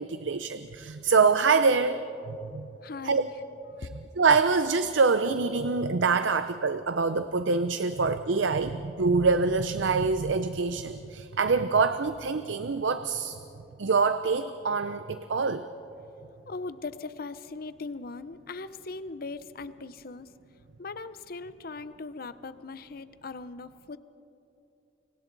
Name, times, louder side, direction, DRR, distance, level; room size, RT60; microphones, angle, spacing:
voice 1, 0.0-2.0 2.5-2.7 3.0-3.2 3.8-3.9 4.2-13.4 13.8-15.6, right 4 dB, 80° right, 11 dB, 0.6 m, -25 dB
voice 2, 2.8-3.3 16.5-20.3 20.8-24.0, left 3 dB, 55° left, 14 dB, 0.7 m, -39 dB
30.0 x 25.0 x 4.0 m, 2.9 s
head